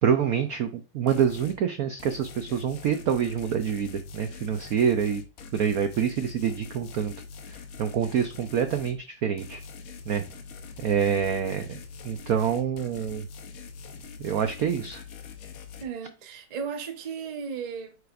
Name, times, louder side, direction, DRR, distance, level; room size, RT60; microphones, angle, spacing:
voice 1, 0.0-5.2 5.5-7.1 7.5-9.6 10.1-10.2 10.8-11.7 12.0-13.3 14.2-15.0, right 8 dB, 75° right, 0.8 m, -26 dB
sound 1, 1.1-1.6 2.0-9.0 9.4-15.8, left 5 dB, 60° left, 1.0 m, -43 dB
voice 2, 15.8-18.0, right 6 dB, 45° right, 0.5 m, -35 dB
9.4 x 5.0 x 2.5 m
omnidirectional pair, 2.3 m